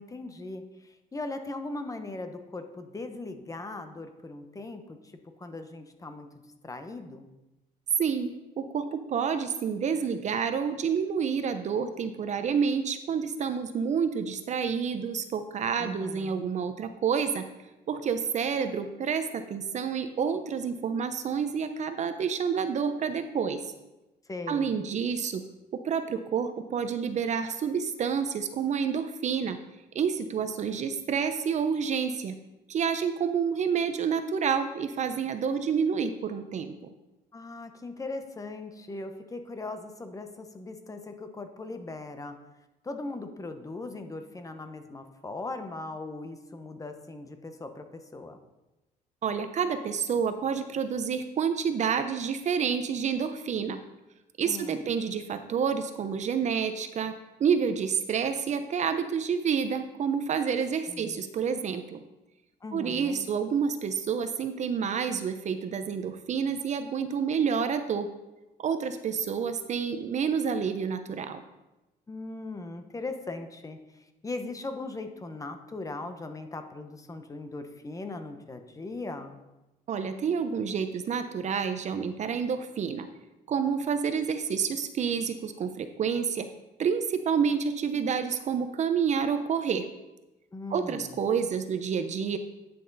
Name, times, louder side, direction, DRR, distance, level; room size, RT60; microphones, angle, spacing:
voice 1, 0.0-5.1 5.4-6.3 6.6-7.3 15.8-16.5 24.3-24.8 37.3-42.4 42.8-48.4 54.4-54.9 60.9-61.2 62.6-63.3 72.1-79.4 90.5-91.2, left 2 dB, 20° left, 7 dB, 0.9 m, -39 dB
voice 2, 8.0-8.3 8.6-17.4 17.9-23.6 24.5-25.4 25.7-29.6 29.9-32.3 32.7-36.9 49.2-53.8 54.4-62.0 62.7-68.1 68.6-71.4 79.9-83.1 83.5-86.5 86.8-89.8 90.7-92.4, right 6 dB, 45° right, 9 dB, 0.6 m, -29 dB
9.4 x 6.3 x 4.0 m, 1.0 s
cardioid pair, 110°, 17 cm